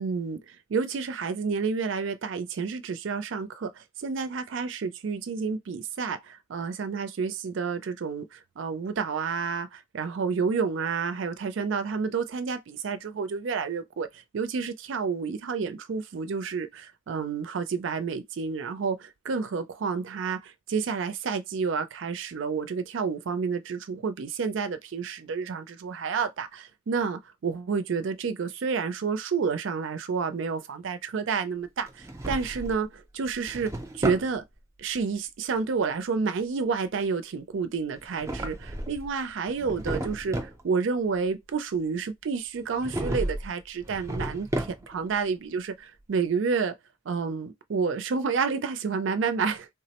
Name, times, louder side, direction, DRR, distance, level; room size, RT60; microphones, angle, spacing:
voice 1, 0.0-34.4 34.8-40.4 40.6-46.7 47.1-49.7, right 5 dB, 70° right, 0.4 m, -30 dB
Drawer open or close, 31.9-32.8 33.3-34.3 38.0-39.1 39.5-40.6 42.8-43.5 43.8-45.1, right 1 dB, 15° right, 0.5 m, -33 dB
3.4 x 2.0 x 2.8 m
head